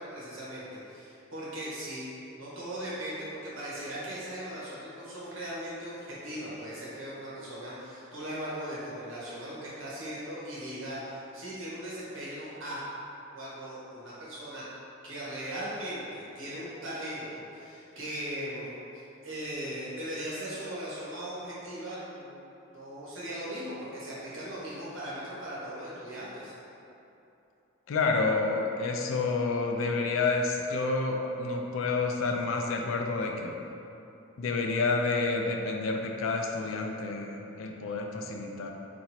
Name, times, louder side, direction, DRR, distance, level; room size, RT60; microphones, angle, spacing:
voice 1, 0.0-2.1 2.4-12.8 13.3-14.7 15.0-18.8 19.2-22.4 22.7-26.5, right 1 dB, 65° right, -8 dB, 1.1 m, -38 dB
voice 2, 27.9-33.6 34.4-38.7, left 3 dB, 70° left, 2 dB, 0.4 m, -29 dB
2.9 x 2.6 x 4.2 m, 2.9 s
head